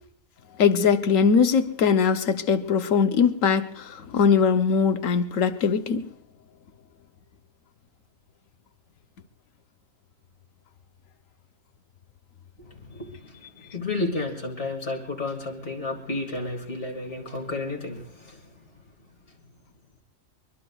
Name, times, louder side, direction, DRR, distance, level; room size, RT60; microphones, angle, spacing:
voice 1, 0.6-6.1, left 6 dB, 75° left, 1.2 m, -21 dB
voice 2, 12.6-18.5, left 2 dB, 55° left, 2.4 m, -32 dB
23.5 x 22.5 x 2.3 m
omnidirectional pair, 1.4 m